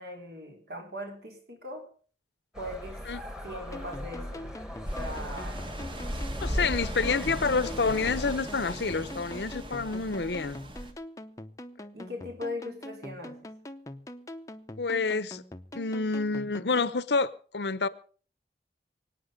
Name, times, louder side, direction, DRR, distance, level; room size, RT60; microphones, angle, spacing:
voice 1, 0.0-1.8 2.6-3.0 3.4-5.6 6.5-6.8 11.9-13.4, left 1 dB, 65° right, 4.2 m, -40 dB
sound 1, 2.5-8.4, equal, 5° right, 1.4 m, -41 dB
sound 2, 3.7-17.0, left 1 dB, 20° left, 0.7 m, -44 dB
sound 3, 4.9-10.9, equal, 30° right, 1.4 m, -36 dB
voice 2, 6.4-10.6 14.8-15.4 15.7-17.9, left 4 dB, 80° left, 0.8 m, -28 dB
24.5 x 9.1 x 5.2 m
head